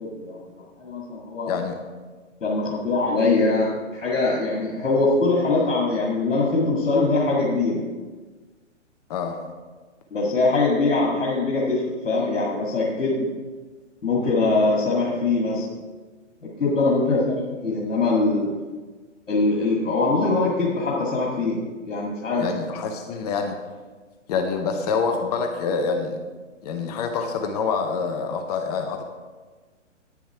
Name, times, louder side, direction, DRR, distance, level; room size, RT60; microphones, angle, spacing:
voice 1, 0.0-1.5 2.4-7.8 10.1-13.3 14.0-15.7 16.4-18.5 19.3-21.6 21.9-22.5, left 3 dB, 80° left, -5 dB, 2.0 m, -22 dB
voice 2, 1.5-1.8 9.1-9.4 22.4-23.6 24.3-26.2 26.6-29.0, left 5 dB, 35° left, 5 dB, 0.8 m, -26 dB
9.8 x 7.1 x 4.7 m, 1.4 s
figure-of-eight pair, 125°, 37 cm